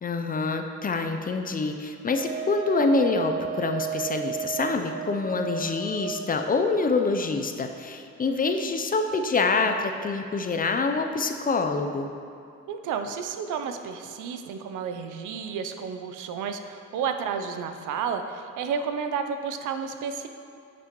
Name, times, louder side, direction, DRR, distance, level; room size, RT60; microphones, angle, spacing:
voice 1, 0.0-12.1, left 3 dB, 30° left, 6 dB, 0.5 m, -26 dB
Wind instrument woodwind instrument, 2.1-6.5, right 7 dB, 60° right, 1.1 m, -33 dB
voice 2, 12.7-20.3, right 6 dB, 80° right, 7 dB, 0.6 m, -31 dB
8.9 x 6.0 x 3.0 m, 2.5 s
cardioid pair, 90°, 30 cm